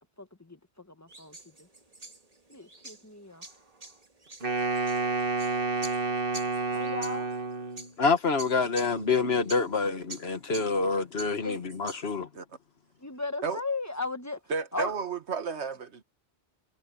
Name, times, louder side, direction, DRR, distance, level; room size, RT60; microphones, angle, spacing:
voice 1, 0.2-1.7 2.5-3.4 6.7-7.3 9.0-9.1 11.4-11.6 13.0-14.4 14.7-14.9, left 3 dB, 15° left, 1.1 m, -36 dB
sound 1, 1.1-12.2, right 2 dB, 35° right, 2.1 m, -48 dB
Wind instrument woodwind instrument, 4.4-7.9, right 3 dB, 55° right, 1.9 m, -29 dB
voice 2, 8.0-12.2, left 4 dB, 65° left, 1.7 m, -27 dB
voice 3, 14.5-16.0, right 5 dB, 80° right, 1.7 m, -32 dB
omnidirectional pair, 1.1 m